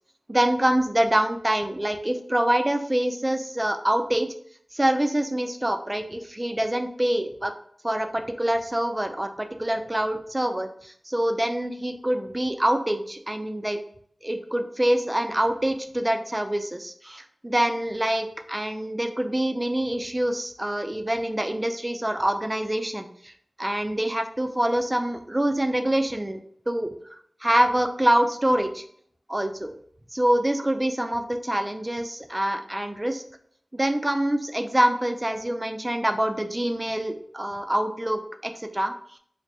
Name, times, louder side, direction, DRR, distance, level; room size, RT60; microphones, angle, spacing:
voice 1, 0.3-4.3 4.7-7.5 7.8-13.8 14.2-23.3 23.6-26.4 26.7-26.9 27.4-28.8 29.3-29.7 30.1-33.2 33.7-39.2, right 1 dB, 20° right, 6 dB, 0.4 m, -25 dB
3.2 x 2.1 x 4.2 m, 0.62 s
cardioid pair, 45°, 0 cm